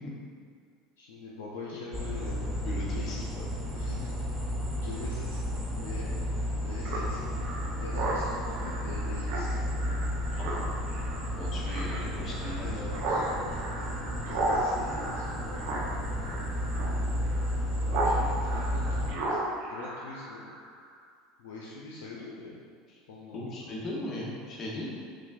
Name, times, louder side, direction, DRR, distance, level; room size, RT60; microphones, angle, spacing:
voice 1, 1.0-2.6 2.9-3.0 3.7-5.4 5.7-6.1 6.6-7.3 7.8-9.6 12.4-15.6 16.3-16.5 17.8-19.4 19.7-20.5 21.4-22.6 23.1-23.6, left 3 dB, 85° left, -5 dB, 0.5 m, -43 dB
sound 1, 1.9-19.1, equal, 15° right, 1.1 m, -33 dB
voice 2, 2.6-3.4 10.3-10.6 11.4-13.0 23.3-24.9, left 1 dB, 40° left, -4 dB, 1.0 m, -38 dB
Speech synthesizer, 6.8-18.2 18.4-20.7, right 2 dB, 70° right, 0.7 m, -35 dB
5.9 x 2.2 x 2.4 m, 2.1 s
supercardioid pair, 110°, 0 cm